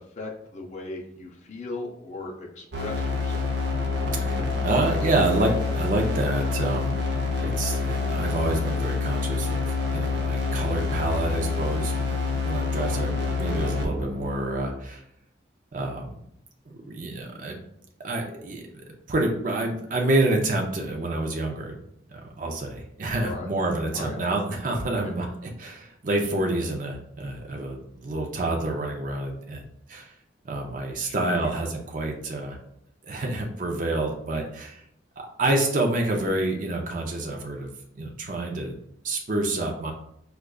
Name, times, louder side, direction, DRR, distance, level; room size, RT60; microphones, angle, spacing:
voice 1, 0.2-3.5 12.7-13.0 23.2-23.5 23.9-24.2 24.9-25.1 31.0-31.4, left 3 dB, 40° left, 0 dB, 0.5 m, -37 dB
sound 1, 2.7-14.7, left 4 dB, 85° right, 0.6 m, -27 dB
voice 2, 4.2-7.0 7.4-15.0 15.7-16.2 16.7-17.6 18.0-18.7 19.1-21.7 22.4-25.3 25.6-29.6 29.9-30.1 30.4-32.6 33.0-34.8 35.4-37.7 38.0-38.7 39.0-39.9, right 2 dB, 45° right, 1 dB, 0.5 m, -28 dB
4.8 x 2.3 x 2.3 m, 0.73 s
head